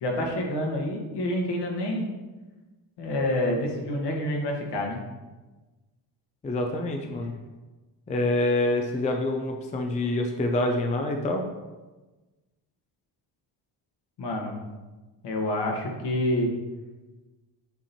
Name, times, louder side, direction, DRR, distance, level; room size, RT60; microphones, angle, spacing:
voice 1, 0.0-2.1 3.0-5.0 7.0-7.2 14.2-14.6 15.2-16.5, left 1 dB, 65° left, 1 dB, 1.5 m, -28 dB
voice 2, 6.4-7.3 8.1-11.4, left 2 dB, 20° left, 3 dB, 0.4 m, -26 dB
8.6 x 2.9 x 4.2 m, 1.2 s
cardioid pair, 155°, 44 cm